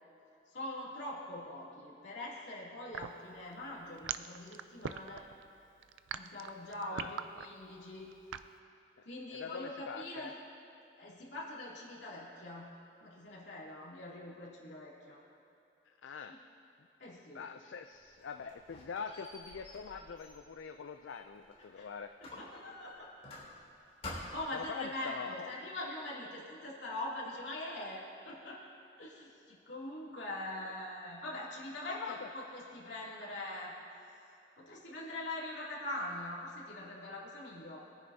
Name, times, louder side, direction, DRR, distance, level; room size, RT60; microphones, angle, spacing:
voice 1, 0.5-5.3 6.1-8.1 9.0-10.3 11.0-12.7 13.0-15.2 16.3-16.4 17.0-17.4 21.7-21.9 22.2-23.1 24.1-28.6 29.0-33.7 34.6-37.8, left 1 dB, 70° left, -6 dB, 2.7 m, -43 dB
sound 1, 2.9-8.5, right 8 dB, 90° right, 0.4 m, -41 dB
voice 2, 9.3-10.3 15.9-16.4 17.3-22.1 24.5-25.5 31.9-32.3, left 6 dB, 85° left, 6 dB, 0.4 m, -44 dB
Squeak, 17.9-21.8 22.2-23.7 24.0-24.6, left 2 dB, 35° left, 3.0 m, -49 dB
21.5 x 9.8 x 2.8 m, 2.8 s
head